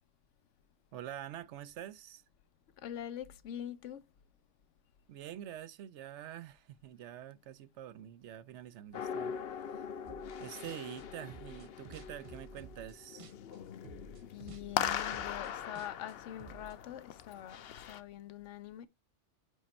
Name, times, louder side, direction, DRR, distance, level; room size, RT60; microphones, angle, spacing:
voice 1, 0.9-2.2 5.1-9.8 10.4-13.3, right 11 dB, 75° right, 0.9 m, -46 dB
voice 2, 2.8-4.0 14.2-18.9, left 11 dB, 85° left, 1.0 m, -44 dB
sound 1, 8.9-18.0, left 8 dB, 65° left, 0.8 m, -41 dB
sound 2, 10.1-10.4 10.6-13.6 13.8-16.7, right 5 dB, 50° right, 0.4 m, -52 dB
5.3 x 5.0 x 4.2 m
omnidirectional pair, 1.2 m